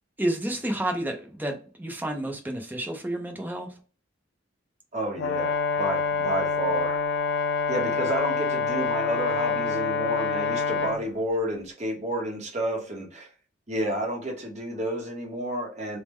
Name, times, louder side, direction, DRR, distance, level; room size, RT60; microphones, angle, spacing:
voice 1, 0.2-3.7, right 1 dB, 10° right, 3 dB, 0.5 m, -30 dB
voice 2, 4.9-7.0 7.7-13.3 13.7-16.0, right 1 dB, 35° right, 1 dB, 0.9 m, -30 dB
Brass instrument, 5.2-11.0, left 4 dB, 65° left, 0.5 m, -26 dB
3.5 x 2.1 x 3.0 m, 0.38 s
head